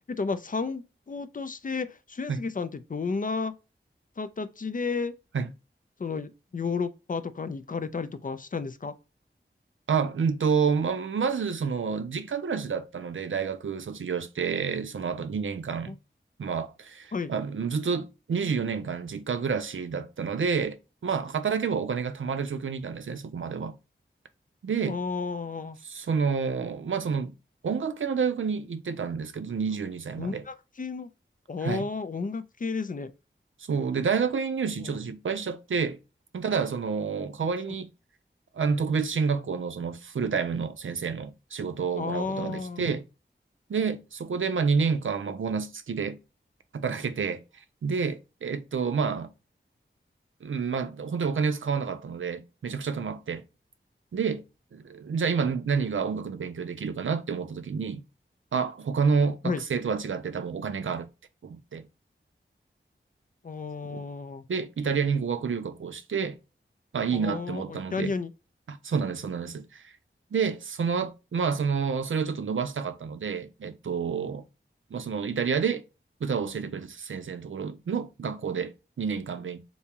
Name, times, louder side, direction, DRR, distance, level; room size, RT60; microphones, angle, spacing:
voice 1, 0.1-3.5 4.2-5.1 6.0-8.9 15.9-16.0 17.1-17.3 24.9-25.8 30.2-31.1 31.5-33.1 34.8-35.0 37.4-37.5 41.9-43.0 59.4-59.6 63.4-64.4 67.1-68.3, left 4 dB, 45° left, 0.4 m, -32 dB
voice 2, 9.9-16.0 16.4-23.8 24.6-25.0 25.8-27.3 27.6-30.4 31.6-31.9 33.7-36.0 36.3-37.9 38.6-43.0 43.7-46.2 46.7-47.4 47.8-49.3 50.4-53.4 54.1-54.5 54.7-58.0 58.5-61.1 61.4-61.9 63.9-64.0 64.5-66.4 66.9-68.1 68.7-69.9 70.3-74.4 74.9-75.8 76.2-79.6, right 5 dB, 80° right, 0.5 m, -29 dB
3.4 x 2.7 x 2.9 m
wide cardioid pair, 55°, 20 cm